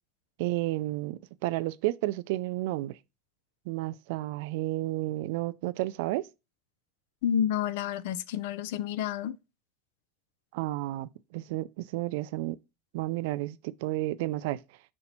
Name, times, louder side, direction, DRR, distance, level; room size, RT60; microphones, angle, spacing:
voice 1, 0.4-3.0 3.7-6.2 10.5-12.6 12.9-14.6, right 17 dB, 70° right, 0.3 m, -31 dB
voice 2, 7.2-9.4, left 9 dB, 70° left, 0.4 m, -29 dB
5.3 x 4.3 x 4.2 m
supercardioid pair, 155°, 0 cm